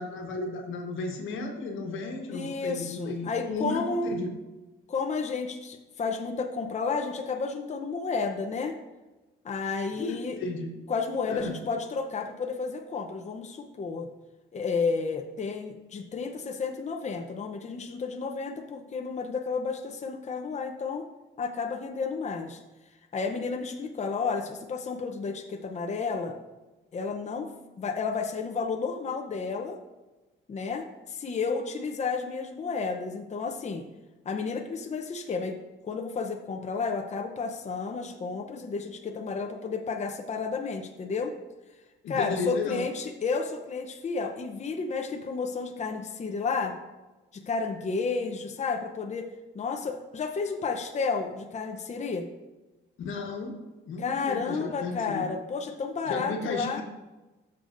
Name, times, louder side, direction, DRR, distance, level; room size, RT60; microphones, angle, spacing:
voice 1, 0.0-3.8 4.1-4.3 9.9-10.7 11.3-11.6 42.0-42.9 53.0-53.5 53.9-55.3 56.0-56.8, left 3 dB, 80° left, 3 dB, 1.3 m, -34 dB
voice 2, 2.3-4.2 4.9-8.8 9.4-10.4 10.9-14.1 14.5-21.1 21.4-22.6 23.1-26.4 26.9-27.5 27.8-29.8 30.5-33.9 34.2-35.6 35.8-41.3 42.1-46.8 47.3-49.3 49.5-52.3 54.0-56.8, left 4 dB, 35° left, 4 dB, 0.7 m, -31 dB
13.0 x 6.9 x 2.6 m, 1.1 s
cardioid pair, 90°, 20 cm